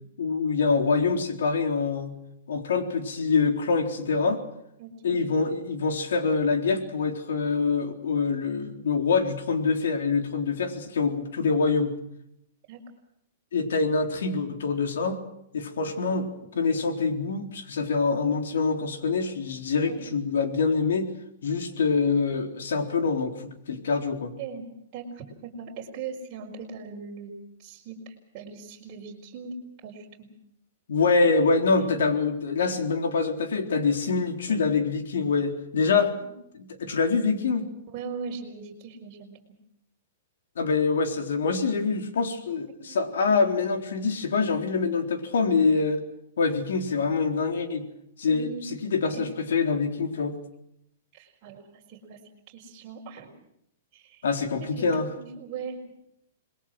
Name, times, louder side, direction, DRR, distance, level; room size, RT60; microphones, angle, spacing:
voice 1, 0.2-2.2 2.5-4.4 5.0-12.0 13.5-15.2 15.5-16.3 16.6-21.1 21.4-24.3 30.9-36.1 36.5-37.7 40.6-46.0 46.4-47.8 48.2-50.4 54.2-55.1, left 4 dB, 85° left, 6 dB, 3.9 m, -25 dB
voice 2, 4.8-5.2 12.7-12.8 15.9-16.1 19.8-20.1 24.4-24.7 24.9-27.3 27.6-29.5 29.8-30.3 31.7-31.9 36.2-36.3 37.9-39.3 42.9-43.0 48.3-48.7 49.1-49.2 51.1-52.2 52.5-53.3 53.9-54.2 54.8-54.9 55.2-55.9, right 5 dB, 25° right, -4 dB, 4.6 m, -40 dB
27.5 x 21.0 x 6.2 m, 0.75 s
hypercardioid pair, 175°, 0 cm